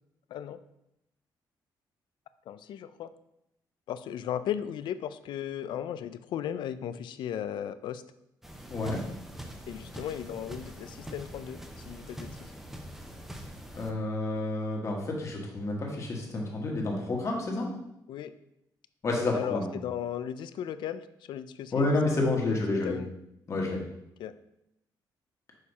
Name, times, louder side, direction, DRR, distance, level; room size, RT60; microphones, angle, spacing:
voice 1, 2.5-3.1 3.9-8.0 9.7-12.5 18.1-18.3 19.3-21.9 22.2-23.1 24.2-24.3, left 10 dB, 75° left, 13 dB, 0.3 m, -36 dB
sound 1, 8.4-13.9, equal, 5° right, 0.6 m, -44 dB
voice 2, 8.7-9.0 13.7-17.7 19.0-19.7 21.7-22.9 23.5-23.8, left 2 dB, 40° left, 0 dB, 1.4 m, -29 dB
6.4 x 2.8 x 5.3 m, 0.84 s
cardioid pair, 120°, 8 cm